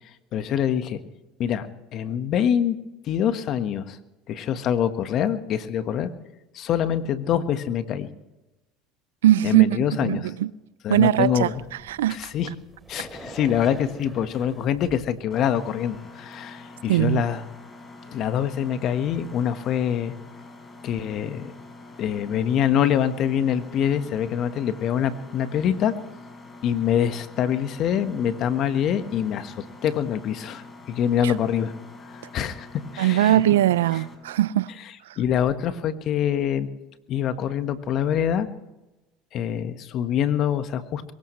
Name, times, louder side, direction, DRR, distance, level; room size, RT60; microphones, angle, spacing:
voice 1, 0.3-1.0 1.4-1.7 1.9-2.8 3.0-4.0 4.3-6.1 6.5-8.1 9.4-10.3 10.8-11.6 12.1-12.5 12.9-17.4 18.1-20.1 20.8-21.5 22.0-25.9 26.6-31.7 32.1-32.7 32.9-33.4 35.2-36.7 37.1-38.5 39.3-41.1, left 9 dB, 55° left, 1.4 m, -25 dB
voice 2, 9.2-10.5 10.9-11.5 11.9-12.2 16.9-17.2 31.2-31.3 33.0-34.7, right 13 dB, 90° right, 0.5 m, -20 dB
sound 1, 11.5-15.3, right 2 dB, 10° right, 3.4 m, -44 dB
Mechanisms, 15.3-34.2, left 2 dB, 30° left, 4.6 m, -45 dB
23.0 x 19.5 x 3.2 m
hypercardioid pair, 85°, 0 cm